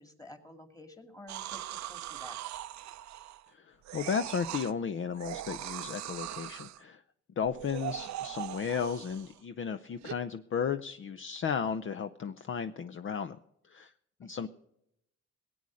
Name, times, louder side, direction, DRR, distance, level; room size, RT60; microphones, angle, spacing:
voice 1, 0.0-2.4 14.2-14.5, left 1 dB, 10° left, 7 dB, 2.1 m, -51 dB
sound 1, 1.3-3.5 3.8-4.7 5.1-6.8 7.4-9.4 10.0-10.1, right 13 dB, 65° right, 0.6 m, -40 dB
voice 2, 3.5-7.0 7.4-13.4 13.7-13.9 14.2-14.5, left 6 dB, 40° left, 11 dB, 0.6 m, -34 dB
18.5 x 8.5 x 6.4 m, 0.78 s
cardioid pair, 90°, 30 cm